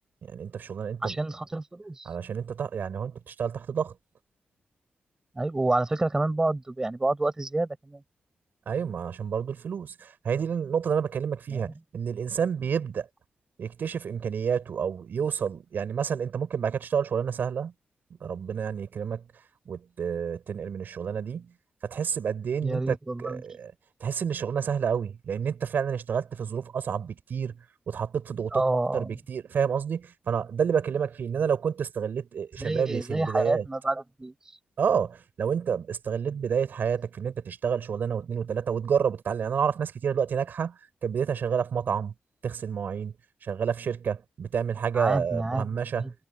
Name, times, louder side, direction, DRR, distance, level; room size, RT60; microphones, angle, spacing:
voice 1, 0.2-1.2 2.0-3.9 8.7-13.1 13.6-17.7 18.2-19.3 19.7-21.5 21.8-23.7 24.0-33.6 34.8-42.1 42.4-43.1 43.4-46.1, right 7 dB, 65° right, 6.1 m, -29 dB
voice 2, 1.0-2.1 5.4-8.0 11.5-11.7 22.6-23.4 28.5-29.2 32.6-34.3 44.9-45.7 46.0-46.1, right 2 dB, 15° right, 5.0 m, -28 dB
wide cardioid pair, 145°, 4 cm